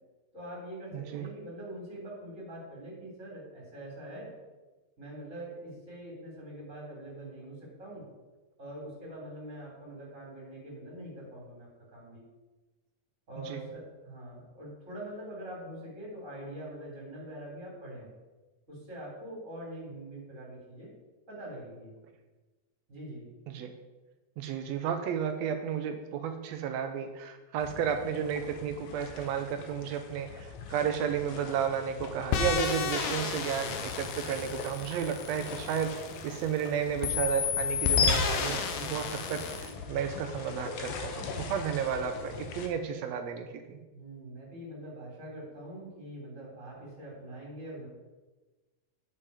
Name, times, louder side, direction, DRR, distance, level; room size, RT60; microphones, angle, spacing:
voice 1, 0.3-4.3 5.0-8.1 8.6-12.2 13.3-18.1 18.7-20.9 21.3-21.9 22.9-23.3 43.9-47.9, right 1 dB, 20° right, -4 dB, 3.8 m, -44 dB
voice 2, 0.9-1.3 13.5-13.6 23.5-23.7 24.4-36.0 36.2-43.8, right 7 dB, 90° right, 7 dB, 1.5 m, -33 dB
sound 1, 27.6-42.7, left 4 dB, 65° left, 1.7 m, -43 dB
sound 2, 32.3-36.6 37.0-39.7, left 6 dB, 85° left, 2.5 m, -31 dB
9.2 x 7.6 x 4.8 m, 1.2 s
omnidirectional pair, 3.8 m